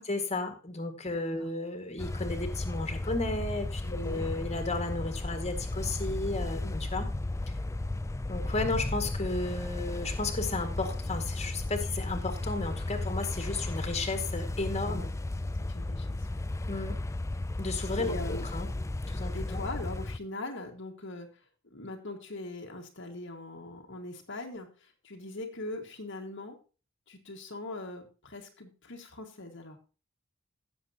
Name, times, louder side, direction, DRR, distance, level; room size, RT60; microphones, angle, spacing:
voice 1, 0.1-7.1 8.3-15.1 16.7-17.0 17.6-18.7 19.1-19.6, left 2 dB, 30° left, 5 dB, 1.9 m, -34 dB
voice 2, 1.1-1.5 3.8-4.3 6.6-6.7 14.8-15.1 15.7-16.4 18.0-18.4 19.3-21.3 21.7-26.6 27.1-29.8, left 2 dB, 65° left, 2 dB, 1.8 m, -41 dB
sound 1, 2.0-20.2, left 2 dB, 15° left, 0.4 m, -34 dB
16.5 x 7.1 x 2.9 m, 0.34 s
head